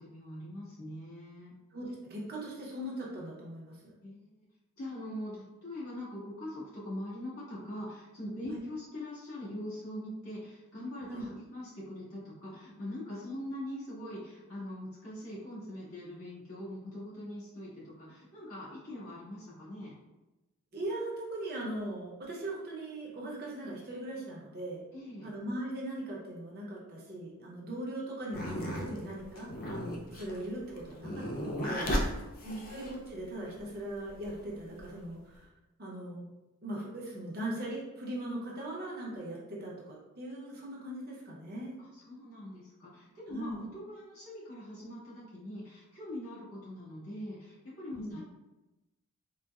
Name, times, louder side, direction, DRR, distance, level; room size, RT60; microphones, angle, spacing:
voice 1, 0.0-1.5 4.0-4.3 4.8-20.0 24.9-25.3 32.0-32.5 41.9-48.2, left 1 dB, 70° left, -9 dB, 1.4 m, -42 dB
voice 2, 1.7-3.9 8.5-8.6 11.1-11.3 20.7-24.8 25.2-31.9 32.4-35.5 35.8-36.2 36.6-41.8 43.3-43.6 47.9-48.2, right 1 dB, 45° right, -4 dB, 0.7 m, -40 dB
sound 1, 28.3-33.2 33.9-34.9, equal, 40° left, 0.4 m, -35 dB
3.9 x 2.1 x 2.3 m, 1.0 s
head